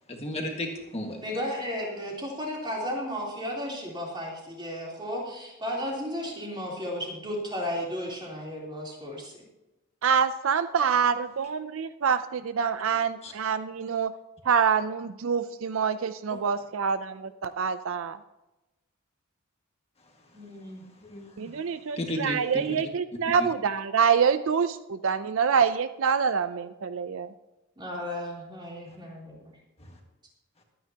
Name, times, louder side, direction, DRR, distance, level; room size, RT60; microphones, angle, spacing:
voice 1, 0.1-1.2 13.2-13.3 16.3-16.4 21.0-21.5 22.0-22.6, left 1 dB, 30° left, 2 dB, 1.7 m, -34 dB
voice 2, 1.2-9.3 20.3-20.8 27.8-29.5, equal, 20° right, -3 dB, 3.4 m, -34 dB
voice 3, 10.0-14.1 14.4-18.2 21.4-27.3, right 6 dB, 65° right, 12 dB, 0.5 m, -26 dB
22.0 x 9.2 x 2.9 m, 0.98 s
head